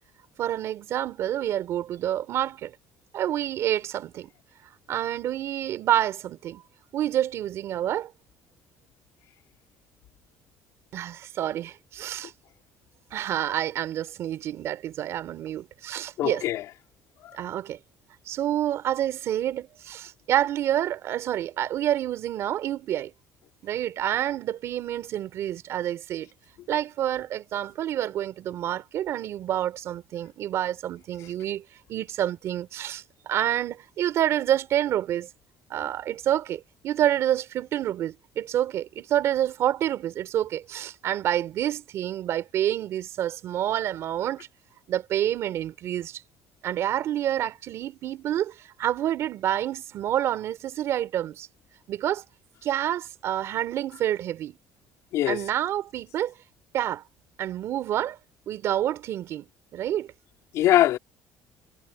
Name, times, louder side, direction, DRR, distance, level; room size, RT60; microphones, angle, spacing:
voice 1, 0.4-2.7 3.1-4.3 4.9-6.6 6.9-8.1 10.9-12.3 13.1-16.4 17.3-17.8 18.3-23.1 23.6-26.3 26.7-31.6 31.9-35.3 35.7-44.5 44.9-46.2 46.6-51.5 51.9-52.2 52.6-54.6 55.3-56.3 56.7-57.0 57.4-58.2 58.5-59.5 59.7-60.1, right 11 dB, 55° right, 3.3 m, -28 dB
voice 2, 16.2-16.6 55.1-55.4 60.5-61.0, left 13 dB, 65° left, 3.6 m, -22 dB
cardioid pair, 150°, 6 cm